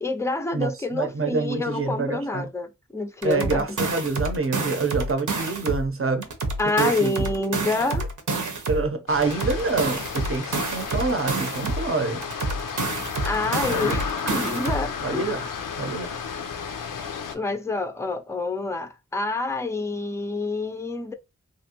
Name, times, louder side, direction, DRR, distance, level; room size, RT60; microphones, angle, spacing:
voice 1, 0.0-3.6 6.6-8.0 13.2-15.4 17.3-21.1, left 3 dB, 10° left, 0.5 m, -27 dB
voice 2, 0.5-2.5 3.2-6.3 6.8-7.1 8.7-12.2 13.7-14.0 14.3-14.4 15.0-16.1, right 4 dB, 45° right, 0.7 m, -27 dB
sound 1, 3.2-5.9 6.2-8.9 9.2-11.9 12.2-14.9, right 3 dB, 70° right, 0.8 m, -28 dB
sound 2, 9.1-17.4, left 6 dB, 85° left, 0.5 m, -32 dB
3.0 x 2.5 x 2.9 m
wide cardioid pair, 60°, 31 cm